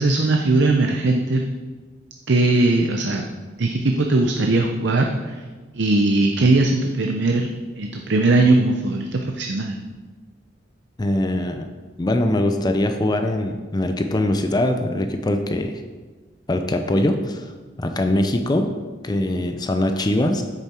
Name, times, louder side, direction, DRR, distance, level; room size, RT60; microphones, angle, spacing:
voice 1, 0.0-1.4 2.3-3.2 3.6-5.4 5.7-7.5 7.8-9.8, right 2 dB, 65° right, 3 dB, 0.6 m, -19 dB
voice 2, 11.0-11.7 12.0-15.8 16.5-17.5 17.8-18.7 19.0-20.4, left 1 dB, 20° left, 6 dB, 0.5 m, -22 dB
8.1 x 6.9 x 4.4 m, 1.3 s
head